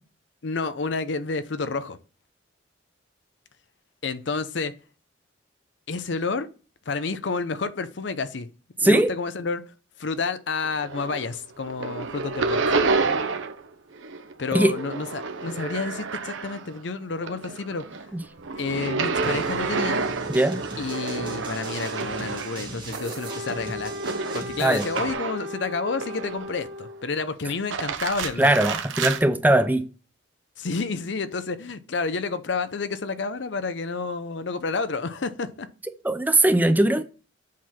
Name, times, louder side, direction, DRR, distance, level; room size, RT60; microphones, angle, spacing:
voice 1, 0.4-2.0 4.0-4.8 5.9-6.5 6.9-8.5 8.8-9.6 10.0-12.8 14.4-17.9 18.6-20.1 20.8-23.9 24.3-28.5 30.6-35.7, left 4 dB, 65° left, 0.6 m, -30 dB
sound 1, 10.6-11.4 11.6-13.7 13.9-16.8 17.2-25.5 26.0-26.7 27.5-29.2, right 4 dB, 85° right, 0.8 m, -29 dB
sound 2, 19.2-25.1, right 2 dB, 25° right, 1.4 m, -39 dB
Wind instrument woodwind instrument, 23.2-27.2, left 1 dB, 60° right, 1.4 m, -37 dB
voice 2, 28.4-29.9 36.0-37.0, right 1 dB, 10° right, 0.5 m, -20 dB
7.4 x 4.0 x 4.3 m
head